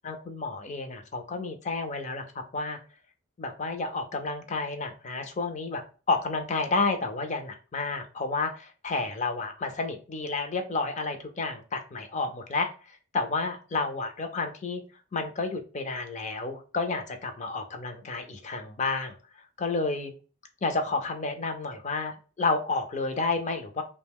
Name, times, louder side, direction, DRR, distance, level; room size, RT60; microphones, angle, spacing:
voice 1, 0.0-2.2 2.5-2.8 3.4-5.8 6.1-14.8 15.1-19.1 19.6-20.1 20.6-23.8, left 3 dB, 35° left, 5 dB, 0.4 m, -30 dB
2.8 x 2.1 x 3.4 m, 0.36 s
head